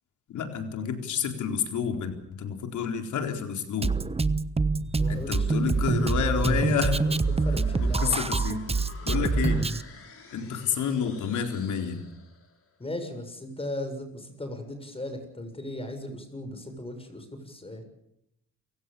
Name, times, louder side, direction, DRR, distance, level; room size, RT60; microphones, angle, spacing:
voice 1, 0.3-3.9 5.1-7.0 7.8-8.6 9.1-9.6 10.3-12.0, left 7 dB, 75° left, 5 dB, 4.1 m, -29 dB
Drum kit, 3.8-9.8, right 4 dB, 20° right, 1.1 m, -26 dB
sound 1, 4.7-12.6, left 4 dB, 50° left, 6.5 m, -47 dB
voice 2, 5.0-5.5 7.3-8.3 9.2-9.5 12.8-17.8, left 1 dB, 20° left, 7 dB, 7.1 m, -37 dB
29.0 x 17.0 x 7.0 m, 0.78 s
cardioid pair, 90°, 30 cm